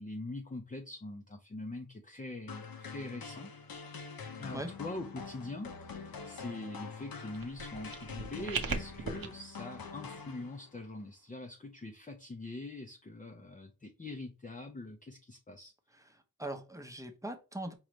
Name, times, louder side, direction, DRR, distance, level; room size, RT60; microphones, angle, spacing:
voice 1, 0.0-3.5 4.4-15.7, left 2 dB, 25° left, 0.6 m, -43 dB
sound 1, 2.5-10.8, left 5 dB, 80° left, 0.8 m, -45 dB
sound 2, 7.3-9.3, right 5 dB, 80° right, 0.8 m, -38 dB
voice 2, 15.9-17.7, right 1 dB, 10° right, 0.8 m, -41 dB
5.0 x 3.1 x 3.1 m
wide cardioid pair, 105°, 35 cm